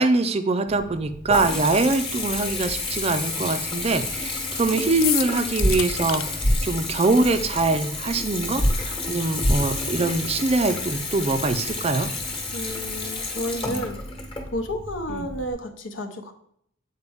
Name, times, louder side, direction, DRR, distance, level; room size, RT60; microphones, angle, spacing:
voice 1, 0.0-6.2 6.6-12.1 15.1-15.3, right 3 dB, 30° right, 9 dB, 0.4 m, -23 dB
Water tap faucet / Bathtub (filling or washing) / Trickle dribble, 0.7-15.5, left 3 dB, 25° left, 1.2 m, -31 dB
sound 1, 5.0-6.2, left 12 dB, 85° left, 0.4 m, -27 dB
sound 2, 5.6-5.7 6.4-6.6 8.6-8.7 9.4-9.6, equal, 50° left, 1.1 m, -19 dB
voice 2, 12.5-14.0 14.5-16.3, equal, 70° left, 6 dB, 0.9 m, -31 dB
8.2 x 4.4 x 3.5 m, 0.70 s
head